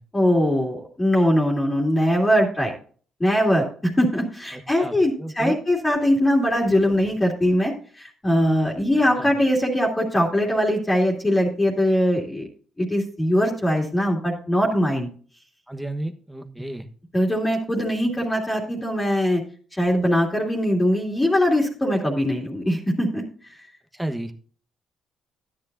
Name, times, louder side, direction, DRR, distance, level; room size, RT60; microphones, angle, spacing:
voice 1, 0.1-2.7 3.2-12.5 12.8-15.1 17.1-19.4 19.8-23.2, equal, 15° left, -2 dB, 2.5 m, -21 dB
voice 2, 4.5-5.6 9.2-9.3 15.7-16.9 23.9-24.3, right 1 dB, 5° right, 7 dB, 1.3 m, -32 dB
13.0 x 9.8 x 2.7 m, 0.43 s
cardioid pair, 90°, 0 cm